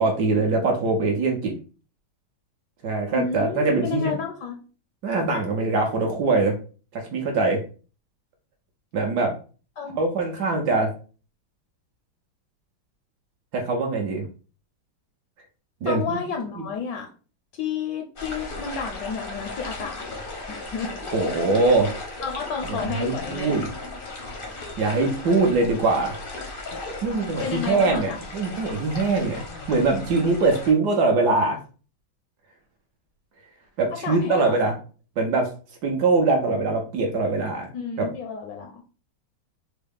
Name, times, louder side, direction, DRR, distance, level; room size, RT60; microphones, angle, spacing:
voice 1, 0.0-1.5 2.8-4.1 5.0-6.6 6.9-7.6 8.9-9.3 10.0-10.9 13.5-14.2 15.8-16.2 21.1-21.9 22.7-23.7 24.8-26.2 27.0-31.6 33.8-34.7 35.2-35.5 35.8-37.7 38.0-38.1, right 3 dB, 65° right, 2 dB, 1.1 m, -22 dB
voice 2, 3.1-4.6 9.8-10.0 15.8-17.1 17.5-20.1 20.5-20.9 22.2-23.7 27.4-28.2 34.0-34.8 37.7-38.8, left 6 dB, 70° left, 3 dB, 1.1 m, -31 dB
sound 1, 18.2-30.7, left 2 dB, 50° left, 0.6 m, -36 dB
4.5 x 2.0 x 3.4 m, 0.37 s
omnidirectional pair, 2.2 m